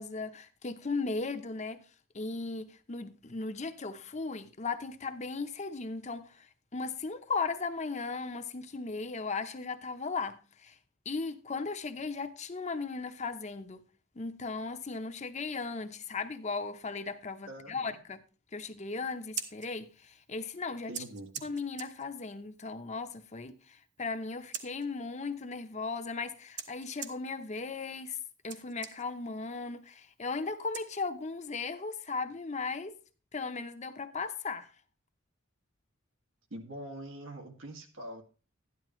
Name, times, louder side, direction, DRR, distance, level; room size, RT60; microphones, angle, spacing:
voice 1, 0.0-1.8 2.1-6.5 6.7-10.7 11.1-13.8 14.1-18.2 18.5-20.9 21.4-28.2 28.4-32.9 33.3-34.7, left 4 dB, 35° left, 0.8 m, -37 dB
voice 2, 17.5-18.0 20.9-21.4 36.5-38.2, right 1 dB, 90° right, 2.1 m, -44 dB
Scissors, 19.1-31.5, right 8 dB, 60° right, 1.2 m, -48 dB
12.5 x 10.5 x 3.1 m
head